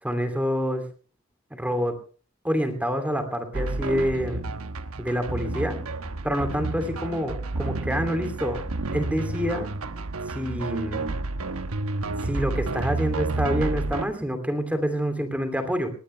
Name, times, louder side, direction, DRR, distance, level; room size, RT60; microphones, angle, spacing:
voice 1, 0.0-0.8 1.5-1.9 2.4-4.5 5.0-5.8 6.2-8.6 8.9-9.7 10.3-11.1 12.2-15.9, equal, 5° right, 7 dB, 2.7 m, -27 dB
sound 1, 3.5-14.1, right 2 dB, 80° right, 1.0 m, -30 dB
19.5 x 18.0 x 3.3 m, 0.37 s
head